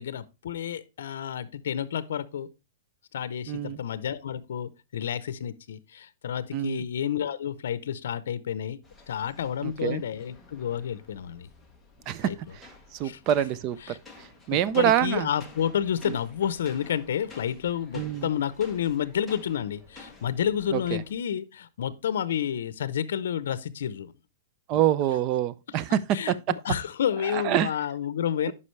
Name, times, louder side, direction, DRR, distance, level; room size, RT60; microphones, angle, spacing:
voice 1, 0.0-2.5 3.1-8.8 9.1-11.5 12.2-12.4 13.0-13.2 13.8-14.0 14.5-24.1 26.1-28.5, left 9 dB, 70° left, 0.7 m, -30 dB
voice 2, 3.5-3.8 6.5-6.8 9.6-10.0 12.1-13.8 14.5-15.3 16.1-16.2 17.9-18.3 20.7-21.0 24.7-26.4 27.3-27.7 28.5-28.6, right 11 dB, 25° right, 0.4 m, -26 dB
sound 1, 8.8-21.1, left 3 dB, ahead, 1.0 m, -51 dB
9.8 x 5.5 x 3.2 m
supercardioid pair, 170°, 0 cm